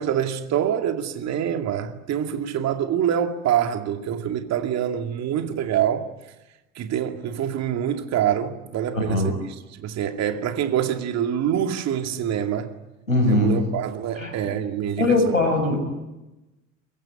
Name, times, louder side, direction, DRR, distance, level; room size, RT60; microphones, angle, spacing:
voice 1, 0.0-6.1 6.8-9.4 9.7-12.7 13.3-15.4, right 9 dB, 40° right, 2.4 m, -25 dB
voice 2, 8.9-9.3 13.1-13.6 14.2-14.3 15.0-15.8, left 2 dB, 90° left, 5.9 m, -20 dB
23.5 x 22.0 x 9.9 m
figure-of-eight pair, 70°, 39 cm